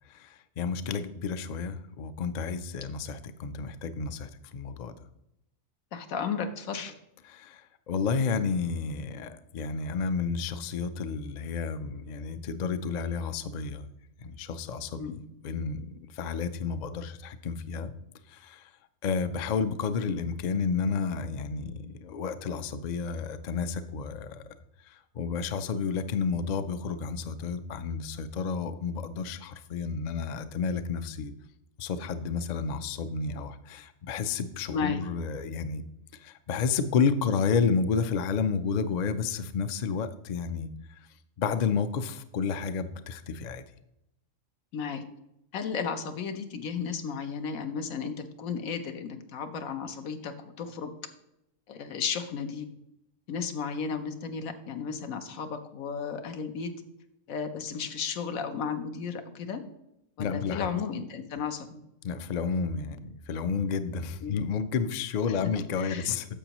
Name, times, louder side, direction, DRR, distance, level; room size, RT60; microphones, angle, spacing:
voice 1, 0.1-4.9 7.3-7.6 7.9-13.9 14.2-15.0 15.4-17.9 18.3-18.6 19.0-24.5 25.2-31.3 31.8-35.8 36.2-40.7 41.4-43.6 60.2-60.7 62.0-66.3, left 5 dB, 65° left, 11 dB, 0.4 m, -31 dB
voice 2, 5.9-6.9 15.0-15.2 34.7-35.0 44.7-45.0 45.5-50.9 51.7-52.7 53.3-56.7 57.3-59.6 60.2-61.8 64.2-64.5 65.3-66.2, left 6 dB, 90° left, 7 dB, 1.2 m, -34 dB
10.0 x 7.1 x 3.0 m, 0.84 s
omnidirectional pair, 1.4 m